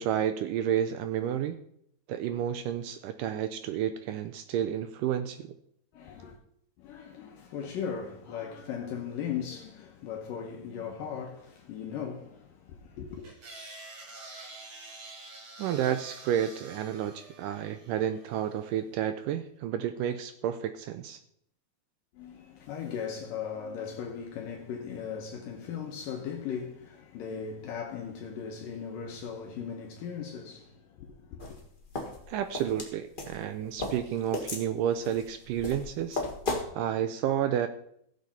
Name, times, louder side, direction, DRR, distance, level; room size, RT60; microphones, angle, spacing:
voice 1, 0.0-1.6 2.1-5.5 15.6-21.2 32.3-36.2 36.7-37.7, right 10 dB, 80° right, 2.0 m, -31 dB
voice 2, 5.9-6.4 6.8-13.3 22.1-31.6, left 7 dB, 75° left, 2.6 m, -38 dB
sound 1, 13.2-18.6, right 2 dB, 45° right, 2.3 m, -47 dB
sound 2, 31.4-36.7, left 2 dB, 35° left, 0.8 m, -35 dB
16.0 x 7.4 x 4.2 m
omnidirectional pair, 4.2 m